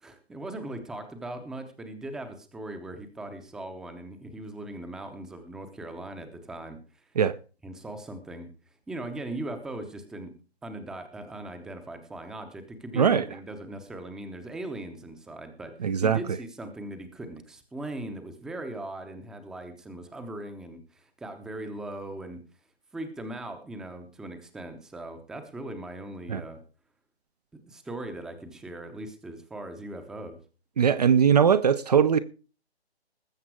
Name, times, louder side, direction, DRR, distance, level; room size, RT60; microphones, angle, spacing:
voice 1, 0.0-7.1 7.6-8.5 8.9-10.4 10.6-22.4 22.9-26.6 27.7-30.4, right 1 dB, ahead, 0.8 m, -39 dB
voice 2, 12.9-13.3 15.8-16.2 26.3-26.4 30.8-32.2, right 7 dB, 40° right, 0.7 m, -20 dB
20.0 x 7.3 x 4.8 m
figure-of-eight pair, 145°, 32 cm